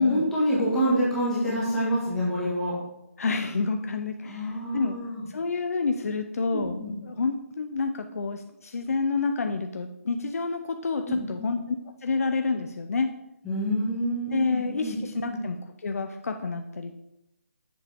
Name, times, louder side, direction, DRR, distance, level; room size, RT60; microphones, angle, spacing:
voice 1, 0.0-2.8 4.3-5.2 6.5-6.9 11.1-11.2 13.4-15.4, equal, 5° left, -8 dB, 1.7 m, -27 dB
voice 2, 3.2-5.0 5.3-11.8 12.0-13.1 14.3-17.0, left 4 dB, 70° left, 6 dB, 0.6 m, -28 dB
7.3 x 5.6 x 3.5 m, 0.86 s
hypercardioid pair, 165°, 8 cm